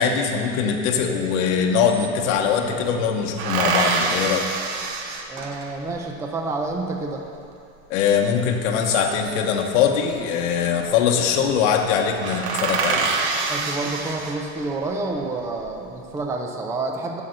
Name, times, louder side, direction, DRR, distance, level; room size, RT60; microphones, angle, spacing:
voice 1, 0.0-4.4 7.9-13.1, left 7 dB, 90° left, 2 dB, 1.0 m, -22 dB
sound 1, 1.3-1.4 1.6-2.6 3.4-5.9 8.6-9.5 10.7-11.1 11.4-11.5 11.9-12.0 12.2-14.8 15.3-16.0, right 4 dB, 80° right, 1.2 m, -26 dB
voice 2, 5.3-7.2 13.5-17.2, right 3 dB, 10° right, 2 dB, 0.4 m, -28 dB
8.2 x 7.5 x 6.5 m, 2.5 s
cardioid pair, 165°, 34 cm